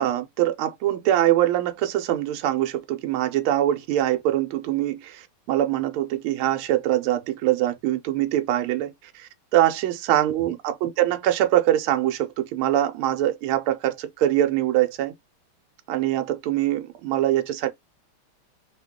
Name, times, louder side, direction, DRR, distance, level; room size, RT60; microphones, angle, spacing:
voice 1, 0.0-15.1 15.9-17.7, right 12 dB, 85° right, 1.5 m, -23 dB
3.4 x 2.2 x 3.5 m
omnidirectional pair, 2.3 m